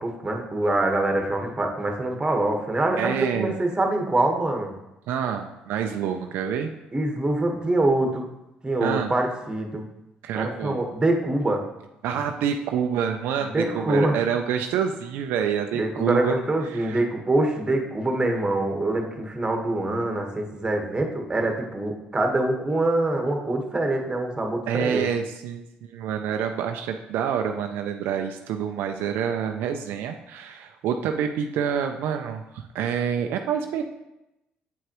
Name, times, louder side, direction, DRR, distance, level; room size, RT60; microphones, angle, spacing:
voice 1, 0.0-4.7 6.9-8.3 8.6-9.8 10.3-11.6 13.4-14.2 15.7-25.1, right 2 dB, 25° right, 3 dB, 1.3 m, -25 dB
voice 2, 3.0-3.6 5.1-6.7 8.8-9.1 10.2-10.8 12.0-16.4 16.7-17.0 24.7-25.6 25.9-33.8, right 8 dB, 75° right, 5 dB, 0.4 m, -27 dB
7.9 x 4.7 x 3.0 m, 0.92 s
supercardioid pair, 65°, 4 cm